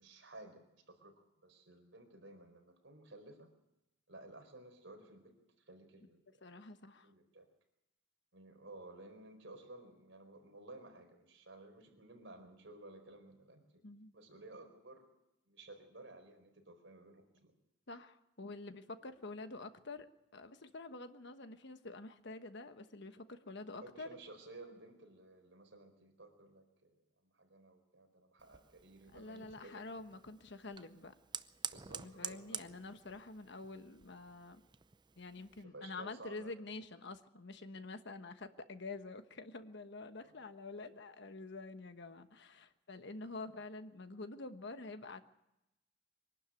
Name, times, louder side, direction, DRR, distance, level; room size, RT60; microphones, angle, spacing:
voice 1, 0.0-3.5 4.1-5.3 5.7-6.4 7.0-7.5 8.3-13.6 14.1-15.1 15.5-17.2 23.8-27.0 27.2-29.8 31.7-32.8 35.4-36.5 40.2-40.3 43.4-43.5, right 2 dB, 65° right, 4 dB, 4.5 m, -55 dB
voice 2, 6.4-7.1 13.8-14.1 17.9-20.1 20.3-24.1 29.1-31.1 31.9-34.6 35.2-45.2, left 3 dB, 60° left, 9 dB, 1.3 m, -48 dB
Fire, 28.4-35.6, right 7 dB, 25° right, 0.6 m, -49 dB
23.5 x 12.0 x 9.2 m, 0.90 s
head